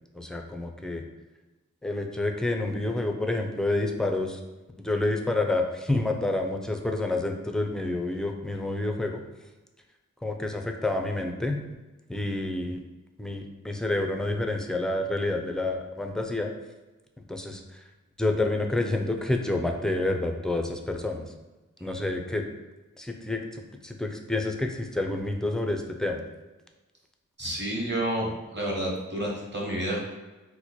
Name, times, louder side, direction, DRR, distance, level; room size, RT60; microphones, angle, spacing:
voice 1, 0.1-1.0 1.8-4.4 4.8-9.2 10.2-11.6 12.1-12.8 13.2-16.5 17.3-17.6 18.2-21.2 21.8-22.4 23.0-26.2, left 2 dB, ahead, 3 dB, 0.4 m, -28 dB
voice 2, 27.4-30.0, right 1 dB, 35° right, -2 dB, 1.1 m, -30 dB
3.0 x 2.1 x 4.2 m, 1.1 s
cardioid pair, 50°, 31 cm